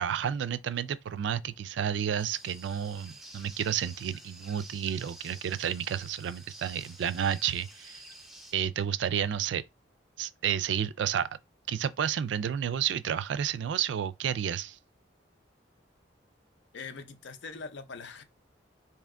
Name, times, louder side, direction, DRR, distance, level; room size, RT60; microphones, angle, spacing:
voice 1, 0.0-8.0 8.5-9.6 10.2-11.3 11.7-14.8, right 9 dB, 70° right, 0.3 m, -31 dB
sound 1, 2.2-8.5, right 1 dB, ahead, 0.5 m, -50 dB
voice 2, 16.7-18.2, left 4 dB, 70° left, 0.6 m, -42 dB
3.3 x 2.9 x 3.6 m
head